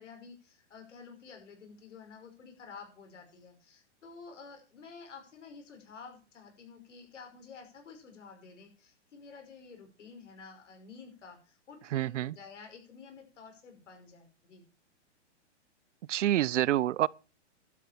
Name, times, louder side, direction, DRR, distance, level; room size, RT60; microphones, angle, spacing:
voice 1, 0.0-14.6, left 5 dB, 85° left, 5.5 m, -51 dB
voice 2, 11.9-12.3 16.1-17.1, right 13 dB, 80° right, 0.6 m, -27 dB
12.0 x 7.7 x 7.1 m
hypercardioid pair, 155°, 36 cm